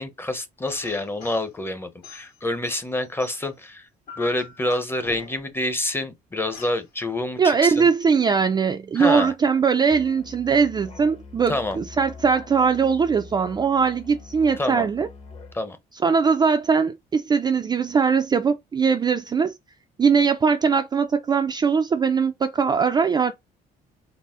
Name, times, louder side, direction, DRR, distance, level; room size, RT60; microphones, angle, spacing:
voice 1, 0.0-3.9 4.2-7.9 9.0-9.3 11.5-11.8 14.6-14.9 15.5-15.8, left 1 dB, 15° left, 0.7 m, -27 dB
sound 1, 0.7-1.5 2.0-3.6 4.1-5.6 6.5-6.8, left 5 dB, 70° left, 2.1 m, -43 dB
voice 2, 7.4-15.1 16.0-19.6 20.0-23.3, right 5 dB, 25° right, 0.3 m, -21 dB
Musical instrument, 9.9-15.6, left 4 dB, 35° left, 0.9 m, -43 dB
4.0 x 2.0 x 3.6 m
cardioid pair, 110°, 17 cm